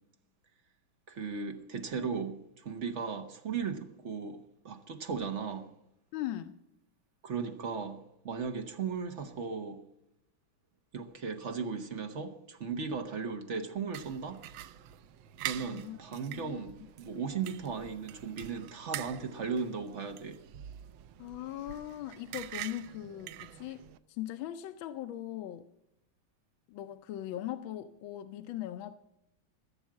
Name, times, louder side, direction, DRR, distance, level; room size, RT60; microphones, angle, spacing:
voice 1, 1.1-4.4 4.6-5.7 7.2-8.0 8.2-9.8 10.9-14.4 15.4-20.4, right 5 dB, 50° right, 1.0 m, -36 dB
voice 2, 6.1-6.6 15.5-16.0 16.3-16.6 21.2-25.7 26.7-29.0, left 12 dB, 75° left, 1.3 m, -40 dB
sound 1, 13.9-24.0, right 13 dB, 75° right, 1.3 m, -45 dB
15.0 x 7.1 x 7.4 m
omnidirectional pair, 2.3 m